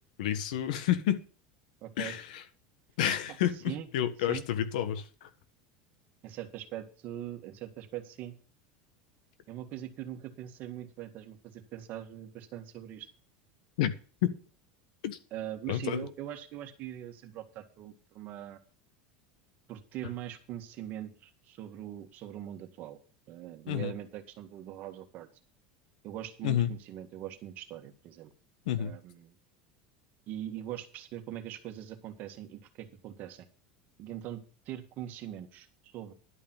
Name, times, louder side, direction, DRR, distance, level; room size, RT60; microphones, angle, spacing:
voice 1, 0.2-1.2 2.0-2.2 3.0-5.3 13.8-13.9 14.2-14.4 15.0-15.2 15.7-16.0 23.7-23.9 26.4-26.7 28.7-28.9, left 11 dB, 80° left, 12 dB, 1.3 m, -29 dB
voice 2, 1.8-2.2 3.5-3.9 4.2-4.5 6.2-8.4 9.5-13.1 15.3-18.6 19.7-23.0 23.3-25.3 26.0-28.3 28.8-29.4 30.3-33.5 34.0-36.1, right 12 dB, 45° right, 6 dB, 1.8 m, -42 dB
11.5 x 5.5 x 7.5 m, 0.38 s
supercardioid pair, 140°, 4 cm